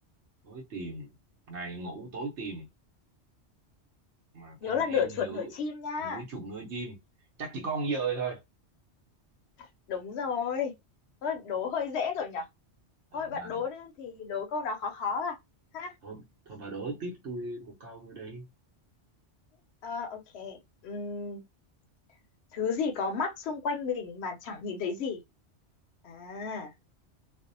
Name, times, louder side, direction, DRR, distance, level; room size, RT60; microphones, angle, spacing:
voice 1, 0.4-1.1 1.5-2.7 4.3-5.5 6.0-7.0 7.4-8.4 13.1-13.6 16.0-18.5, right 4 dB, 75° right, 1.0 m, -37 dB
voice 2, 4.6-6.2 9.9-10.7 11.2-12.5 13.1-15.4 15.7-15.9 19.8-21.4 22.5-25.2 26.0-26.7, left 6 dB, 70° left, 0.8 m, -32 dB
2.5 x 2.1 x 2.5 m
omnidirectional pair, 1.2 m